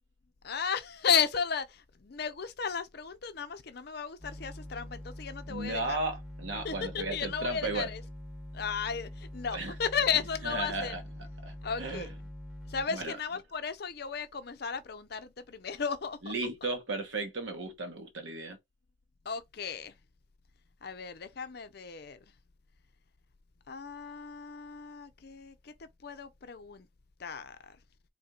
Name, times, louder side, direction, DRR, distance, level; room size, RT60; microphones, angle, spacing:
voice 1, 0.4-6.0 6.6-8.0 8.5-11.0 11.6-12.1 12.7-16.3 19.2-20.0 20.8-22.2 23.7-26.9 27.2-27.8, left 6 dB, 50° left, 0.5 m, -34 dB
sound 1, 4.2-12.9, left 1 dB, ahead, 1.2 m, -44 dB
voice 2, 5.5-7.9 9.5-9.7 10.4-11.0 11.4-12.1 12.9-13.2 16.2-18.6, right 2 dB, 70° right, 1.1 m, -35 dB
4.3 x 3.3 x 2.4 m
head